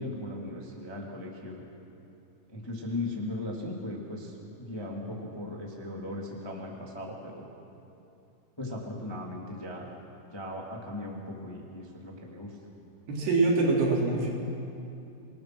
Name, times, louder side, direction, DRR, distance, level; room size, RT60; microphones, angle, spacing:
voice 1, 0.0-1.6 2.5-7.4 8.6-9.9 10.3-12.5, left 1 dB, 10° left, -2 dB, 1.1 m, -37 dB
voice 2, 13.1-14.3, right 3 dB, 75° right, -3 dB, 5.6 m, -24 dB
27.0 x 19.5 x 6.1 m, 2.7 s
omnidirectional pair, 4.8 m